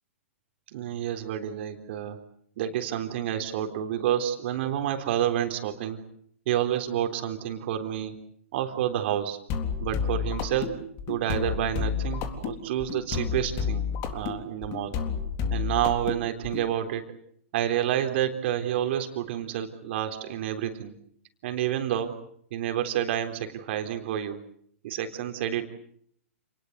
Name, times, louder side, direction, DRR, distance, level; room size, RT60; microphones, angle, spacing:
voice 1, 0.7-2.2 2.6-6.0 6.5-8.2 8.5-9.4 9.8-10.8 11.1-13.8 14.1-15.0 15.5-17.0 17.5-20.9 21.4-22.2 22.5-24.4 24.8-25.7, right 11 dB, 55° right, 6 dB, 3.7 m, -29 dB
sound 1, 9.5-16.7, left 7 dB, 35° left, 3.8 m, -30 dB
29.0 x 20.0 x 8.2 m, 0.68 s
hypercardioid pair, 120°, 8 cm